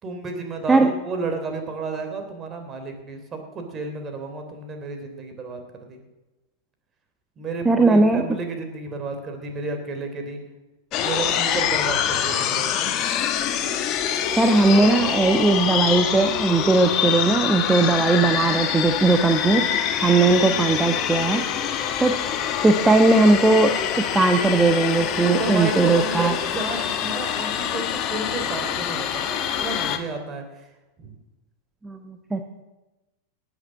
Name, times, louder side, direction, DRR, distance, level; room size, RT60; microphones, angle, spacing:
voice 1, 0.0-5.6 5.9-6.0 7.4-10.4 11.0-12.9 20.0-20.2 25.2-30.7 31.0-31.1, right 3 dB, 30° right, 5 dB, 3.2 m, -31 dB
voice 2, 7.6-8.4 14.4-21.4 22.0-22.2 22.6-26.3 31.8-32.4, right 3 dB, 10° right, 6 dB, 1.1 m, -19 dB
sound 1, 10.9-30.0, left 9 dB, 40° left, 1.5 m, -25 dB
18.0 x 8.3 x 7.5 m, 1.1 s
hypercardioid pair, 95°, 0 cm